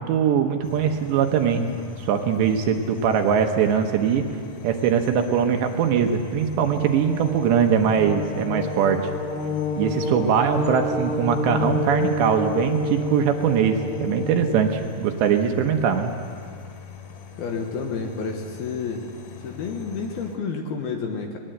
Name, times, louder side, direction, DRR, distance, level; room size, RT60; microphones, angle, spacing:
voice 1, 0.0-1.7 2.0-4.2 4.6-9.0 9.8-16.1, right 7 dB, 75° right, 5 dB, 3.1 m, -21 dB
sound 1, 0.6-20.4, left 8 dB, 85° left, 4.8 m, -43 dB
sound 2, 6.8-14.7, left 2 dB, 30° left, 4.1 m, -29 dB
voice 2, 17.4-19.1 19.4-21.4, left 5 dB, 65° left, 3 dB, 2.6 m, -30 dB
21.5 x 20.0 x 7.9 m, 2.2 s
omnidirectional pair, 5.6 m